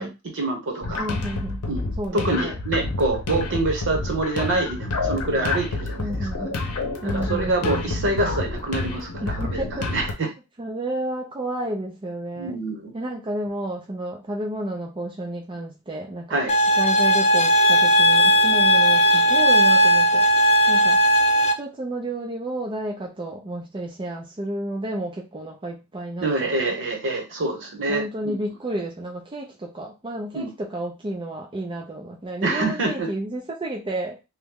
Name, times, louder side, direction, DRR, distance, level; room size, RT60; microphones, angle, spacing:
voice 1, 0.0-1.0 1.7-6.3 7.0-9.6 9.9-10.3 12.4-12.9 16.3-16.5 26.2-28.3 30.3-30.5 32.4-33.1, right 2 dB, 60° right, 2 dB, 1.1 m, -26 dB
sound 1, 0.8-10.1, left 3 dB, 70° left, 0.7 m, -29 dB
voice 2, 0.9-1.6 2.0-2.5 6.0-6.5 7.0-8.0 9.2-9.9 10.6-12.6 12.9-16.4 16.8-20.3 20.7-21.0 21.6-26.8 27.9-34.2, right 1 dB, 20° right, -1 dB, 0.4 m, -31 dB
sound 2, 16.5-21.5, equal, 30° left, 0.5 m, -17 dB
3.0 x 2.2 x 3.5 m, 0.26 s
head